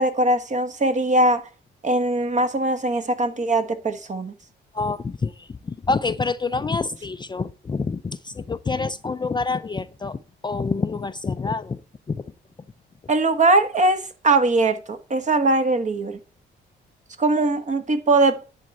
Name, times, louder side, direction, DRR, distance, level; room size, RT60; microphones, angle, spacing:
voice 1, 0.0-1.4 1.8-4.3 13.1-16.2 17.2-18.4, right 2 dB, 40° right, 1.4 m, -21 dB
voice 2, 4.7-11.8 12.1-12.2, left 4 dB, 20° left, 0.5 m, -27 dB
10.5 x 4.3 x 7.7 m
cardioid pair, 90°, 20 cm